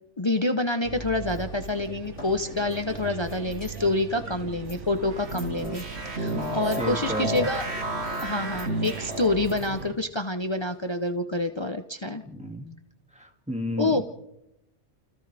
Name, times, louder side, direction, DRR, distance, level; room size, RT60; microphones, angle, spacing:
voice 1, 0.2-7.6 8.2-12.2 13.8-14.0, left 2 dB, 25° left, 7 dB, 0.8 m, -27 dB
sound 1, 0.8-9.9, right 4 dB, 80° right, 1.6 m, -40 dB
sound 2, 1.2-11.1, left 1 dB, 65° left, 3.8 m, -49 dB
sound 3, 5.0-9.4, right 1 dB, 65° right, 1.9 m, -32 dB
voice 2, 6.1-7.5 12.0-12.6 13.1-14.0, equal, 5° right, 3 dB, 2.2 m, -34 dB
29.0 x 27.0 x 3.4 m, 0.91 s
omnidirectional pair, 1.2 m